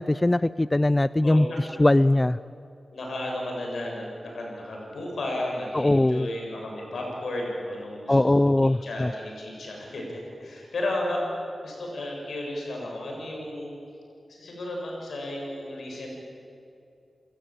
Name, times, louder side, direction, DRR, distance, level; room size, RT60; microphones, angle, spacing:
voice 1, 0.0-1.5 1.8-2.4 5.7-6.3 8.1-9.1, left 1 dB, 25° left, 17 dB, 0.5 m, -21 dB
voice 2, 1.2-1.7 2.9-8.5 8.8-13.8 14.3-16.2, left 1 dB, 80° left, -1 dB, 7.5 m, -33 dB
29.0 x 16.0 x 9.1 m, 2.6 s
cardioid pair, 45°, 0 cm